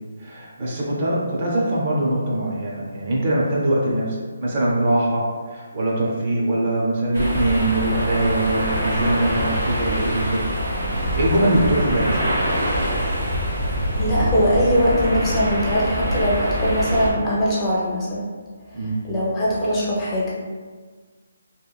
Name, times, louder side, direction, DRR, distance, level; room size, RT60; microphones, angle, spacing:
voice 1, 0.2-10.4 10.7-12.5 18.7-19.0, right 1 dB, 40° right, -4 dB, 0.6 m, -22 dB
sound 1, 7.1-17.1, equal, 75° right, 0.9 m, -24 dB
voice 2, 13.9-18.2 19.0-20.3, equal, 15° left, -7 dB, 0.4 m, -21 dB
2.9 x 2.5 x 2.3 m, 1.5 s
hypercardioid pair, 165°, 0 cm